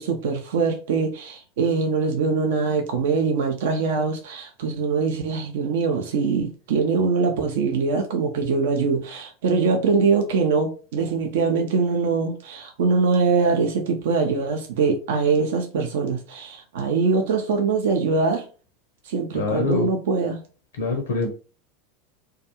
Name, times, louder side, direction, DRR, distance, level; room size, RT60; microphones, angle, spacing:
voice 1, 0.0-18.5 19.0-20.4, right 4 dB, 70° right, 0.4 m, -23 dB
voice 2, 19.3-19.9 20.8-21.3, left 3 dB, 75° left, 0.5 m, -24 dB
2.3 x 2.3 x 2.8 m
hypercardioid pair, 85°, 0 cm